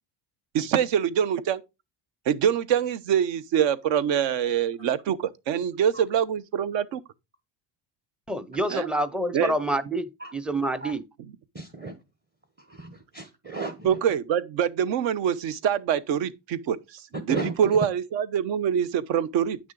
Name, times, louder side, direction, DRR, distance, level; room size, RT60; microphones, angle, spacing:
voice 1, 0.5-1.6 2.3-7.0 8.7-8.9 9.3-9.5 13.8-17.0 17.3-19.6, right 8 dB, 65° right, 1.0 m, -25 dB
voice 2, 8.3-11.0, right 1 dB, ahead, 0.5 m, -27 dB
voice 3, 11.5-12.0 12.7-13.9 17.3-17.5, right 3 dB, 20° right, 1.0 m, -34 dB
9.4 x 6.2 x 3.9 m
cardioid pair, 125°, 49 cm